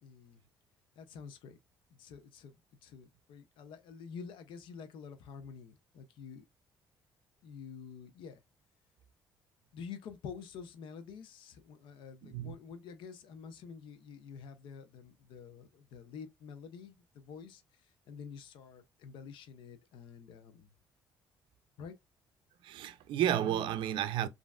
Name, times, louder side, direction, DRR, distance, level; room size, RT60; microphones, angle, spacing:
voice 1, 0.0-0.4 1.0-1.6 2.0-2.6 2.8-6.5 7.4-8.4 9.7-17.6 18.1-20.7 21.8-21.9, left 6 dB, 75° left, 0.6 m, -48 dB
voice 2, 12.2-12.5 22.6-24.3, right 11 dB, 75° right, 0.4 m, -32 dB
3.1 x 2.5 x 2.3 m
supercardioid pair, 75°, 9 cm